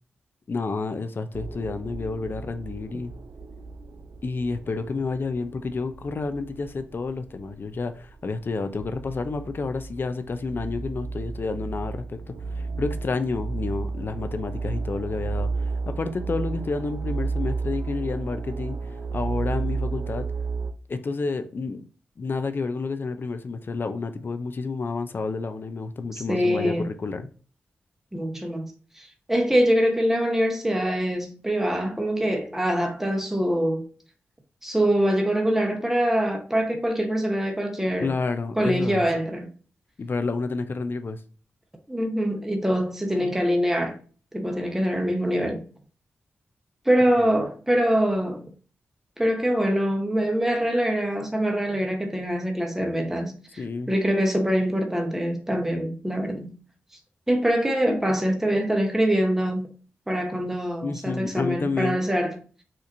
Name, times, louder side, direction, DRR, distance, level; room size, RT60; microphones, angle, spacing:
voice 1, 0.5-3.1 4.2-18.8 19.1-20.2 20.9-21.9 22.2-27.3 38.0-39.0 40.0-41.2 47.2-47.3 53.6-53.9 60.8-62.0, left 4 dB, 50° left, 0.4 m, -30 dB
sound 1, 1.3-20.7, right 4 dB, 75° right, 0.4 m, -33 dB
voice 2, 26.1-26.9 28.1-33.9 34.6-38.1 38.6-39.5 41.9-44.0 44.3-45.7 46.9-48.5 49.2-56.6 57.3-59.7 60.1-62.4, equal, 10° right, 0.7 m, -24 dB
4.3 x 2.5 x 2.5 m
cardioid pair, 65°, 4 cm